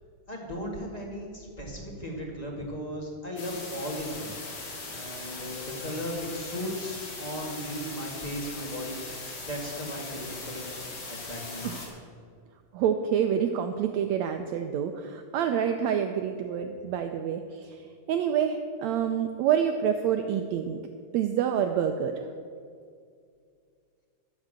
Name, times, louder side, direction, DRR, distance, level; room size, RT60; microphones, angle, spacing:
voice 1, 0.3-4.4 4.6-9.0 9.4-10.6 11.1-11.7, equal, 15° left, -1 dB, 1.4 m, -36 dB
sound 1, 3.4-11.9, left 3 dB, 70° left, 3.9 m, -39 dB
voice 2, 12.7-17.8 18.1-20.8 21.1-22.3, right 8 dB, 85° right, 6 dB, 1.5 m, -27 dB
12.0 x 7.4 x 7.5 m, 2.3 s
omnidirectional pair, 3.8 m